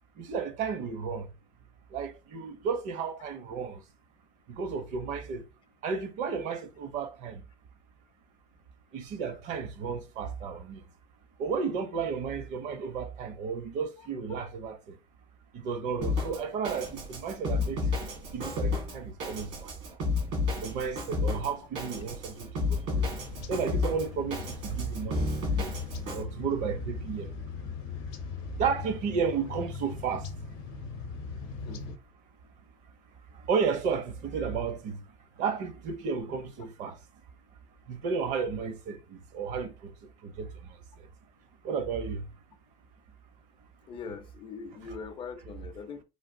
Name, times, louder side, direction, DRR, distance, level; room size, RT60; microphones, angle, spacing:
voice 1, 0.2-1.3 1.9-3.8 4.5-5.4 5.8-7.4 8.9-10.8 11.4-15.0 15.5-17.8 18.3-19.7 20.6-23.1 23.5-25.7 26.1-27.3 28.6-30.3 33.5-35.0 35.4-37.0 37.9-39.9 40.2-40.8 41.6-42.2 44.8-45.0, right 6 dB, 55° right, 0.7 m, -33 dB
Drum kit, 16.0-26.2, left 3 dB, 75° right, 1.6 m, -32 dB
sound 1, 22.9-32.0, left 4 dB, 75° left, 0.7 m, -40 dB
voice 2, 31.6-32.0 43.9-46.0, left 5 dB, 35° left, 0.4 m, -42 dB
3.3 x 2.2 x 2.6 m
supercardioid pair, 110°, 15 cm